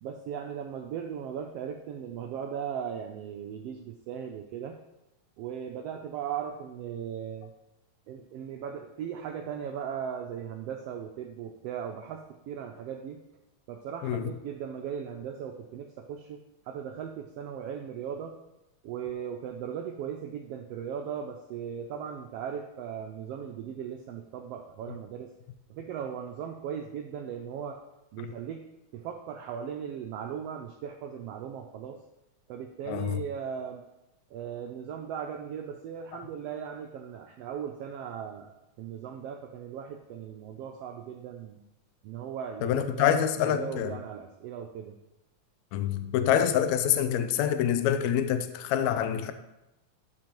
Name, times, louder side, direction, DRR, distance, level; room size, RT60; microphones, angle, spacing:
voice 1, 0.0-4.8 5.4-7.5 8.1-13.2 13.7-16.4 16.6-18.3 18.8-25.3 25.7-27.8 28.1-28.6 28.9-32.0 32.5-33.8 34.3-41.6 42.0-44.9, right 8 dB, 85° right, 1.3 m, -38 dB
voice 2, 32.9-33.2 42.6-44.0 45.7-49.3, left 9 dB, 80° left, 1.9 m, -26 dB
12.0 x 5.2 x 3.0 m
omnidirectional pair, 3.3 m